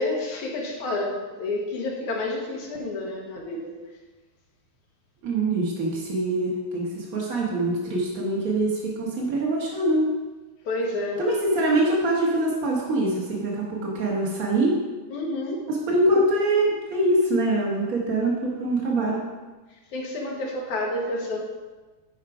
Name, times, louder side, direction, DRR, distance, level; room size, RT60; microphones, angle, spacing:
voice 1, 0.0-3.8 10.6-11.2 15.1-15.7 19.9-21.4, left 2 dB, 65° left, 0 dB, 2.5 m, -29 dB
voice 2, 5.2-10.1 11.2-14.8 15.7-19.2, right 1 dB, 80° right, -3 dB, 0.7 m, -24 dB
10.5 x 5.1 x 4.8 m, 1.3 s
omnidirectional pair, 3.9 m